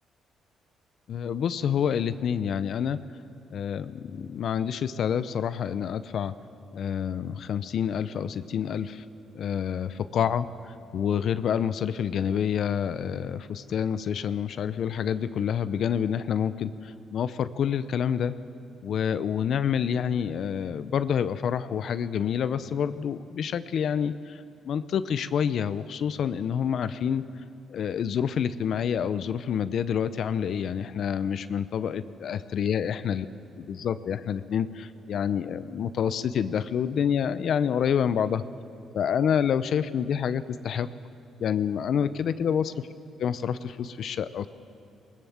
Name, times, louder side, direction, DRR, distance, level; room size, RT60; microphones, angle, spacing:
voice 1, 1.1-3.0 3.5-6.3 6.7-9.1 9.3-18.4 18.8-27.2 27.7-33.3 33.6-38.4 38.9-40.9 41.4-42.7 43.2-44.5, left 8 dB, 65° left, 13 dB, 0.7 m, -28 dB
21.0 x 19.5 x 7.3 m, 2.6 s
cardioid pair, 90°, 0 cm